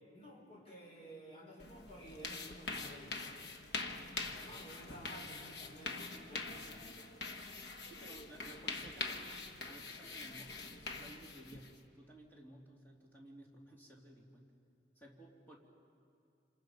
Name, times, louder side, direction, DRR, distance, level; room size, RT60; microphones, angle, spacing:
voice 1, 0.1-3.1 4.2-6.0 6.3-6.9 9.0-9.3, equal, 35° left, -2 dB, 4.9 m, -53 dB
sound 1, 1.6-11.8, left 3 dB, 65° left, 1.3 m, -44 dB
voice 2, 3.8-4.3 7.8-9.3 9.6-14.5 14.9-15.6, right 1 dB, 10° left, -2 dB, 3.0 m, -57 dB
27.5 x 27.0 x 5.4 m, 2.5 s
head